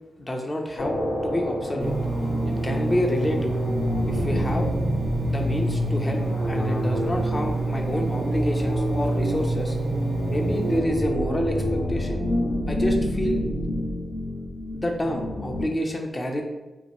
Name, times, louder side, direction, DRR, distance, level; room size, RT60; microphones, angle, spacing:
voice 1, 0.2-1.0 1.2-2.0 2.5-3.6 4.1-4.7 5.3-6.2 6.5-9.7 10.3-12.2 12.7-13.4 14.7-16.4, left 1 dB, 25° left, 3 dB, 0.4 m, -28 dB
sound 1, 0.8-15.7, left 1 dB, 80° left, 0.5 m, -28 dB
Engine, 1.8-10.8, right 4 dB, 75° right, 0.5 m, -28 dB
2.7 x 2.6 x 2.9 m, 1.1 s
wide cardioid pair, 115°, 0 cm